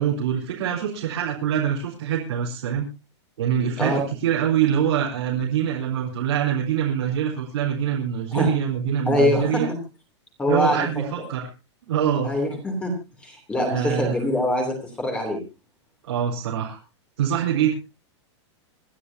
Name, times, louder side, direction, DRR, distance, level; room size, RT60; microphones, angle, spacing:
voice 1, 0.0-2.9 3.4-9.7 10.5-11.5 11.9-12.3 13.7-14.2 16.0-16.8 17.2-17.7, right 9 dB, 80° right, -3 dB, 4.3 m, -24 dB
voice 2, 9.0-9.8 10.4-10.8 12.2-12.9 13.2-15.4, left 1 dB, 5° left, 3 dB, 3.1 m, -23 dB
27.0 x 11.5 x 2.8 m, 0.28 s
supercardioid pair, 180°, 15 cm